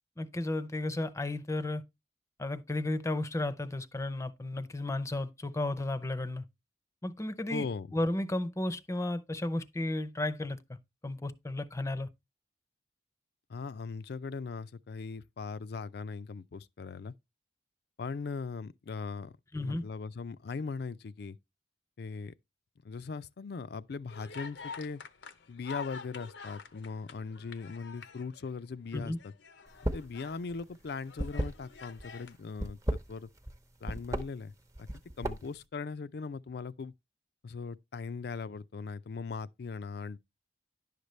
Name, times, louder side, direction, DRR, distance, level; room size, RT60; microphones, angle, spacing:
voice 1, 0.2-1.8 2.4-6.5 7.0-7.7 7.9-10.6 11.0-12.1 19.5-19.8 28.9-29.2, left 2 dB, 15° left, 0.6 m, -33 dB
voice 2, 7.5-7.9 13.5-17.1 18.0-19.3 19.6-21.4 22.0-22.3 22.8-25.0 25.5-29.3 29.9-33.3 33.8-34.5 34.8-34.9 35.2-36.9 37.4-40.2, left 4 dB, 65° left, 0.4 m, -39 dB
sound 1, 24.1-28.6 29.1-30.4 30.9-32.4, left 5 dB, 85° left, 0.8 m, -47 dB
sound 2, 29.7-30.2 30.4-32.0 32.5-33.6 33.9-34.2 34.8-35.6, right 1 dB, 20° right, 0.7 m, -33 dB
11.0 x 6.6 x 3.2 m
head